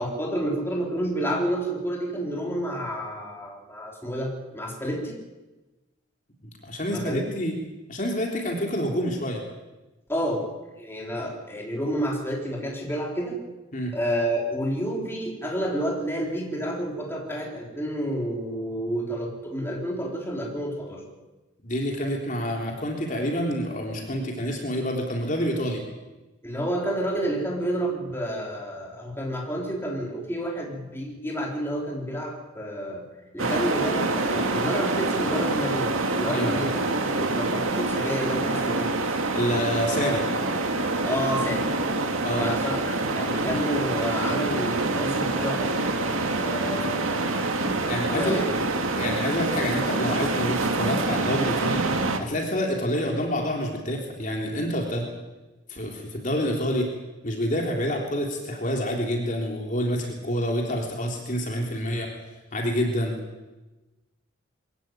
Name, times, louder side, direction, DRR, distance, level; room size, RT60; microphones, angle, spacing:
voice 1, 0.0-5.2 6.9-7.2 10.1-10.5 10.8-13.4 13.9-21.0 26.4-33.1 33.3-38.9 41.0-41.7 42.4-45.7 46.4-47.4 48.0-48.7, equal, 10° left, -1 dB, 4.1 m, -30 dB
voice 2, 6.6-7.6 7.9-9.4 13.7-13.9 21.6-25.8 36.3-36.7 39.0-40.2 42.2-42.5 47.8-48.4 48.9-51.9 52.2-55.1 55.7-56.9 57.2-62.1 62.5-63.1, equal, 40° left, 0 dB, 3.6 m, -27 dB
sound 1, 33.4-52.2, right 2 dB, 80° right, 2.3 m, -26 dB
23.0 x 16.0 x 9.2 m, 1.1 s
head